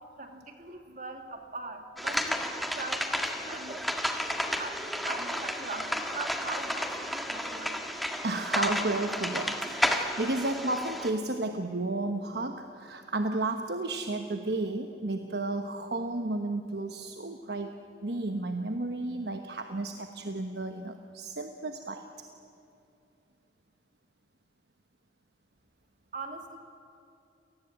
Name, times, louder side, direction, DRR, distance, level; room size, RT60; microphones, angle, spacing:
voice 1, 0.2-2.4 2.7-3.9 4.6-7.8 26.1-26.6, right 3 dB, 45° right, 4 dB, 2.6 m, -41 dB
sound 1, 2.0-11.1, equal, ahead, 1.7 m, -32 dB
voice 2, 8.2-17.8 18.0-22.3, right 2 dB, 60° right, 6 dB, 1.2 m, -33 dB
28.5 x 19.0 x 8.8 m, 2.7 s
head